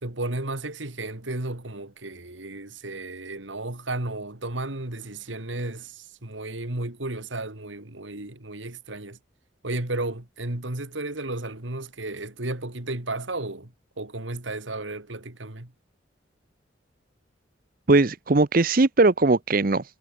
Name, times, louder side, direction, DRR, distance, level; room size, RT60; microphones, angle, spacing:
voice 1, 0.0-9.2 9.6-13.7 14.0-15.7, right 2 dB, 90° right, 2.8 m, -33 dB
voice 2, 17.9-19.9, right 3 dB, 50° right, 0.8 m, -19 dB
head